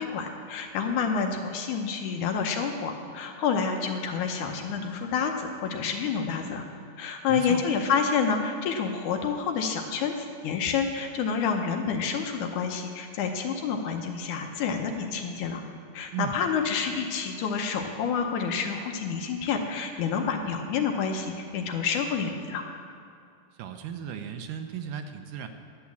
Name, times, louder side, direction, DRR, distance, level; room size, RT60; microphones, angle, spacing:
voice 1, 0.0-6.6 7.0-15.6 15.9-22.6, left 6 dB, 75° left, 4 dB, 2.1 m, -28 dB
voice 2, 7.3-7.6 16.1-16.4 23.6-25.5, right 9 dB, 80° right, 7 dB, 2.1 m, -35 dB
11.5 x 8.6 x 7.0 m, 2.4 s
omnidirectional pair, 3.9 m